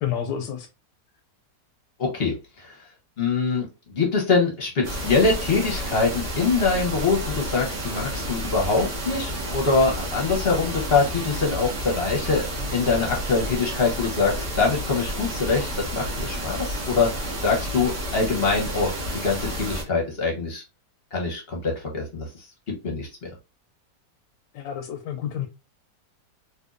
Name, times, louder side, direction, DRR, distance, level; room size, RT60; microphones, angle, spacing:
voice 1, 0.0-0.7 24.5-25.5, left 9 dB, 85° left, 1.2 m, -29 dB
voice 2, 2.0-2.8 3.2-3.7 3.9-17.1 17.4-18.9 19.2-20.6 21.1-22.3 22.8-23.3, left 4 dB, 45° left, 0.9 m, -24 dB
sound 1, 4.8-19.8, equal, 50° right, 1.4 m, -31 dB
4.3 x 2.5 x 2.4 m
omnidirectional pair, 1.9 m